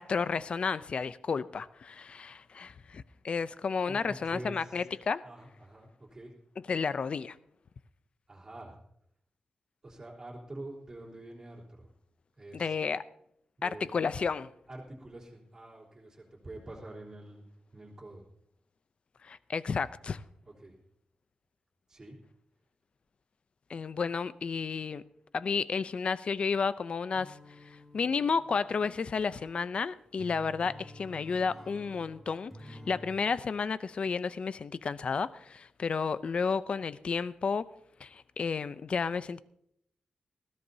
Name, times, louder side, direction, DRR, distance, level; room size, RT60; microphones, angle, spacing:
voice 1, 0.0-5.2 6.7-7.4 12.5-13.0 13.6-14.5 19.2-20.2 23.7-25.0 25.3-27.4 27.6-37.7 38.0-39.4, left 5 dB, 50° left, 0.5 m, -32 dB
voice 2, 3.9-4.9 5.2-6.3 8.3-8.8 9.8-11.9 12.4-12.8 13.6-14.0 14.7-17.4 17.7-18.2 20.5-20.8 21.9-22.2, right 1 dB, 25° right, 3.6 m, -46 dB
sound 1, 27.1-33.3, left 1 dB, 5° left, 2.7 m, -51 dB
20.0 x 15.0 x 2.7 m
wide cardioid pair, 170°, 2 cm